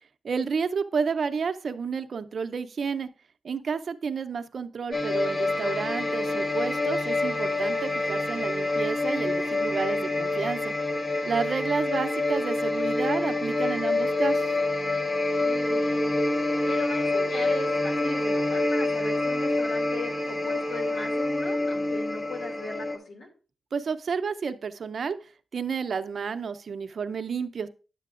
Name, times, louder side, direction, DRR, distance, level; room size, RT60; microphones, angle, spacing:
voice 1, 0.2-3.1 3.4-10.7 11.2-14.6 23.7-25.2 25.5-27.7, right 5 dB, 60° right, 10 dB, 0.6 m, -30 dB
sound 1, 4.9-23.0, left 2 dB, 35° left, 1.1 m, -27 dB
voice 2, 11.2-11.6 15.4-16.1 16.6-23.3, left 3 dB, 75° left, 2 dB, 2.3 m, -39 dB
9.8 x 7.5 x 2.5 m, 0.35 s
cardioid pair, 80°, 0 cm